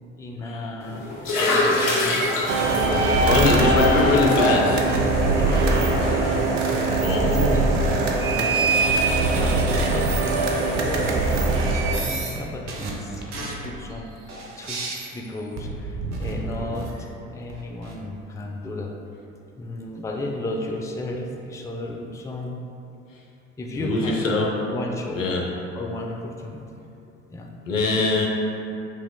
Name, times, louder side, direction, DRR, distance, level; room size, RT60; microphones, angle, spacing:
voice 1, 0.2-1.0 1.4-2.3 2.7-3.7 5.3-6.4 6.7-7.9 8.2-8.8 9.1-14.8 15.1-18.9 19.6-22.6 23.6-24.2 24.7-25.2 25.7-26.8 27.3-27.5, left 2 dB, 10° left, 0 dB, 0.4 m, -34 dB
sound 1, 0.8-6.4, left 2 dB, 60° left, 0.9 m, -27 dB
sound 2, 2.5-12.0, right 2 dB, 70° right, 0.7 m, -21 dB
voice 2, 3.3-4.8 7.0-7.6 23.8-24.5 25.1-25.4 27.7-28.3, left 2 dB, 85° left, -2 dB, 0.7 m, -21 dB
sound 3, 5.8-7.2 7.5-8.6 9.2-9.4 9.7-9.8 10.4-12.4 12.6-17.1 17.5-17.9, right 3 dB, 45° right, 0.9 m, -34 dB
7.9 x 3.0 x 2.2 m, 2.7 s
figure-of-eight pair, 55°, 38 cm